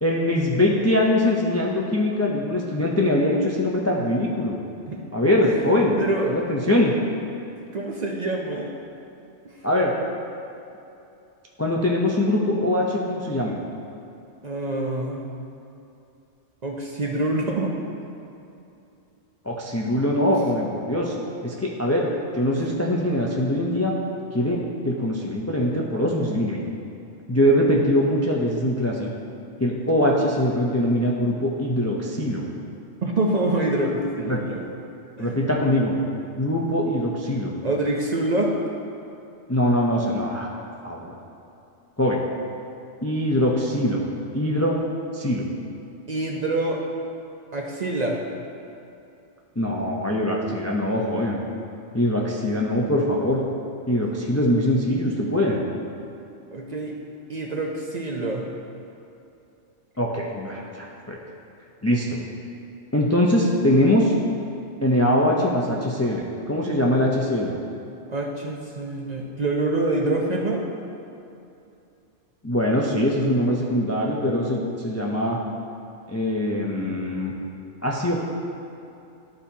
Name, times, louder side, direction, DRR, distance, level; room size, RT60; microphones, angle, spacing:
voice 1, 0.0-4.6 5.1-6.0 6.3-7.0 9.6-9.9 11.6-13.5 19.4-21.1 21.4-23.9 24.3-24.6 24.8-26.7 27.3-29.1 29.6-32.4 34.3-34.4 35.2-35.9 36.4-37.5 39.5-40.5 40.8-41.2 42.0-42.2 43.0-44.0 44.3-44.8 45.1-45.5 49.6-51.4 51.9-53.4 53.9-55.6 60.0-61.2 61.8-62.2 62.9-64.1 64.8-67.5 72.4-75.4 76.1-77.3 77.8-78.2, left 1 dB, 25° left, -2 dB, 0.3 m, -22 dB
voice 2, 5.9-6.3 7.6-8.7 9.4-9.5 14.4-15.3 16.6-17.7 22.6-22.7 33.0-34.6 35.2-35.4 37.6-38.5 46.1-46.8 47.5-48.2 56.5-57.0 57.3-58.5 68.1-70.6, right 2 dB, 50° right, -1 dB, 0.5 m, -26 dB
11.5 x 4.3 x 2.7 m, 2.8 s
omnidirectional pair, 1.2 m